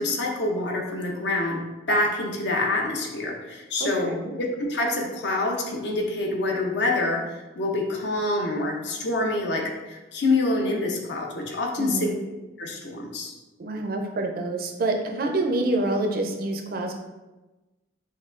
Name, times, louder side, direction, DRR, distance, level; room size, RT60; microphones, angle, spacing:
voice 1, 0.0-1.6 1.9-4.1 4.4-12.1 12.6-13.3, left 2 dB, 60° left, 1 dB, 0.6 m, -26 dB
voice 2, 3.8-4.3 11.8-12.2 13.6-16.9, right 2 dB, 50° right, 3 dB, 0.4 m, -27 dB
5.5 x 2.2 x 2.4 m, 1.1 s
head